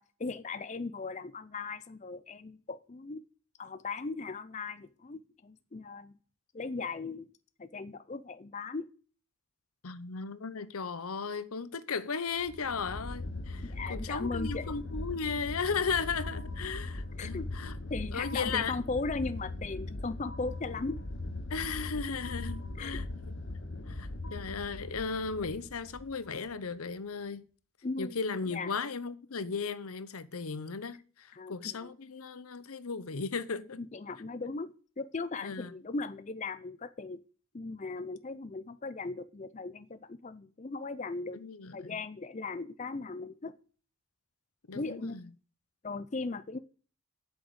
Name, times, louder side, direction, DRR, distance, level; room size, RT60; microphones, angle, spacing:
voice 1, 0.0-3.2 3.6-6.1 6.5-7.3 7.6-8.9 13.6-14.7 17.2-17.5 17.9-21.0 22.8-23.0 27.8-28.2 28.5-28.7 31.3-31.9 33.8-34.7 35.0-37.2 37.5-41.4 41.7-43.5 44.7-45.3 45.8-46.6, left 3 dB, 35° left, 0.5 m, -38 dB
voice 2, 9.8-17.8 18.1-18.8 21.5-23.3 23.9-27.4 28.0-33.8 35.4-35.7 41.3-42.0 44.7-45.3, left 5 dB, 85° left, 0.8 m, -36 dB
sound 1, 12.4-26.5, left 2 dB, 55° left, 1.2 m, -40 dB
8.2 x 6.3 x 7.9 m
head